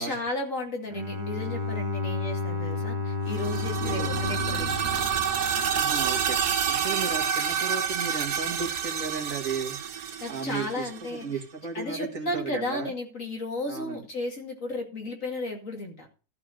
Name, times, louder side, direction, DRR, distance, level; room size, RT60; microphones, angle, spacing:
voice 1, 0.0-4.7 10.2-11.3 11.7-16.1, left 2 dB, 50° left, 2 dB, 2.7 m, -34 dB
Bowed string instrument, 0.9-6.1, left 3 dB, 30° right, 1.4 m, -32 dB
sound 1, 3.3-11.1, right 8 dB, 70° right, 1.5 m, -28 dB
voice 2, 5.7-9.8 10.3-12.9 13.7-14.0, right 5 dB, 55° right, 2 dB, 2.2 m, -35 dB
14.0 x 4.8 x 6.4 m, 0.36 s
omnidirectional pair, 1.8 m